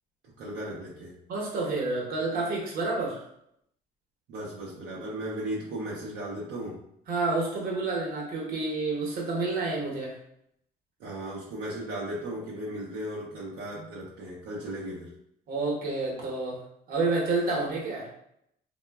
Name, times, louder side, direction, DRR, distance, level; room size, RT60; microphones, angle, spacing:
voice 1, 0.4-1.2 4.3-6.8 11.0-15.1, right 1 dB, 80° right, -5 dB, 0.7 m, -36 dB
voice 2, 1.3-3.2 7.1-10.1 15.5-16.6 16.9-18.1, right 3 dB, 60° right, -2 dB, 1.0 m, -29 dB
3.0 x 2.2 x 2.3 m, 0.74 s
cardioid pair, 110°, 17 cm